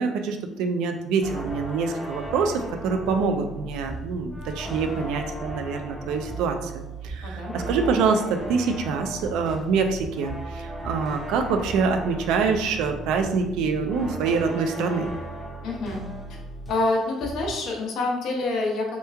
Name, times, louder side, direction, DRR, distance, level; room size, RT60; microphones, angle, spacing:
voice 1, 0.0-15.1, right 5 dB, 85° right, 5 dB, 0.4 m, -25 dB
sound 1, 1.2-16.9 17.2-17.6, right 1 dB, 10° left, 0.6 m, -36 dB
voice 2, 7.2-7.6 15.6-16.0 16.3-16.4 16.7-19.0, left 2 dB, 65° left, 0 dB, 0.7 m, -27 dB
3.0 x 2.2 x 3.4 m, 0.94 s
cardioid pair, 120°, 0 cm